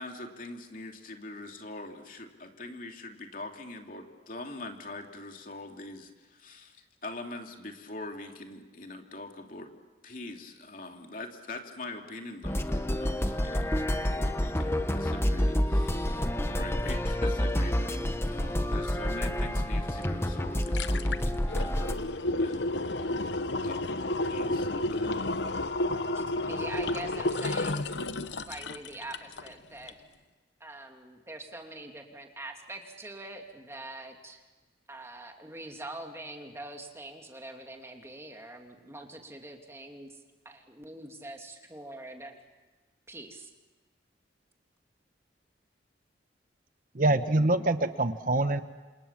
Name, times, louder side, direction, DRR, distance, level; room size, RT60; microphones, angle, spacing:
voice 1, 0.0-9.7 10.0-13.7 14.0-23.3 23.6-25.3 26.3-26.5, left 2 dB, 50° left, 3 dB, 2.9 m, -43 dB
sound 1, 12.4-21.9, equal, 15° left, 1.2 m, -28 dB
sound 2, 20.0-20.1 20.4-29.5 29.9-30.0, left 2 dB, 75° left, 0.9 m, -31 dB
voice 2, 26.1-27.9 28.5-30.0 30.6-34.4 34.9-42.3 43.1-43.5, right 2 dB, 15° right, 3 dB, 2.8 m, -44 dB
voice 3, 46.9-48.6, right 2 dB, 50° right, 10 dB, 1.0 m, -25 dB
29.0 x 27.5 x 7.4 m, 1.3 s
head